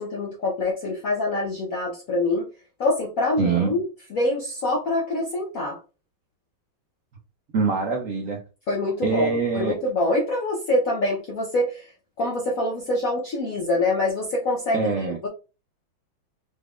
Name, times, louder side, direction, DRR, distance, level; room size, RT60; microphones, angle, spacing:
voice 1, 0.0-2.5 2.8-5.8 8.7-11.9 12.2-14.9 15.2-15.3, left 2 dB, 55° left, 1.0 m, -25 dB
voice 2, 3.4-3.8 7.5-8.4 9.0-9.8 14.7-15.2, right 5 dB, 80° right, 0.7 m, -24 dB
4.3 x 3.5 x 2.4 m
omnidirectional pair, 2.2 m